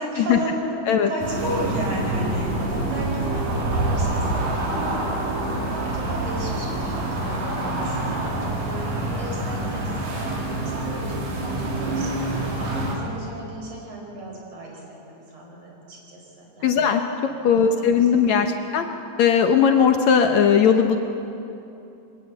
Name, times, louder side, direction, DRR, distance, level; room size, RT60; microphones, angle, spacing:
voice 1, 0.0-4.9 5.7-8.4 9.0-17.0 17.4-18.7, right 1 dB, 45° right, -1 dB, 6.1 m, -34 dB
sound 1, 1.2-12.9, right 1 dB, 65° right, 5.1 m, -26 dB
voice 2, 16.6-17.0 17.4-18.9 19.2-21.0, left 7 dB, 70° left, 5 dB, 1.8 m, -18 dB
24.5 x 18.5 x 7.7 m, 2.8 s
omnidirectional pair, 4.2 m